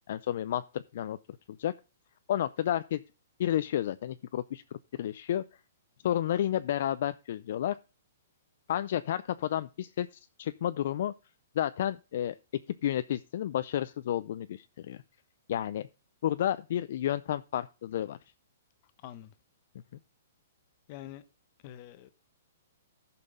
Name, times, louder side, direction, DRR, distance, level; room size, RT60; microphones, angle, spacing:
voice 1, 0.1-1.2 1.6-1.7 2.3-3.0 3.4-5.4 6.0-7.8 8.7-11.1 11.6-12.4 12.8-15.0 15.5-15.9 16.2-18.2, left 11 dB, 55° left, 0.4 m, -31 dB
voice 2, 20.9-21.2 21.6-22.1, left 12 dB, 35° left, 1.0 m, -45 dB
14.5 x 5.9 x 3.8 m
hypercardioid pair, 160°, 0 cm